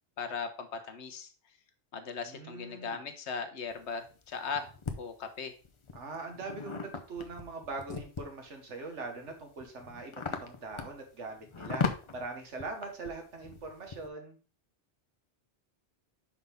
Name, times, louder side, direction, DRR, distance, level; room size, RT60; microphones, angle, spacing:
voice 1, 0.2-1.6 1.9-5.5, left 5 dB, 75° left, 7 dB, 1.1 m, -38 dB
voice 2, 2.2-3.0 5.9-14.4, right 3 dB, 85° right, 4 dB, 1.6 m, -42 dB
sound 1, 3.7-5.0 5.6-8.5 9.0-14.1, left 5 dB, 35° left, 0.6 m, -38 dB
5.7 x 5.5 x 3.4 m, 0.36 s
omnidirectional pair, 1.2 m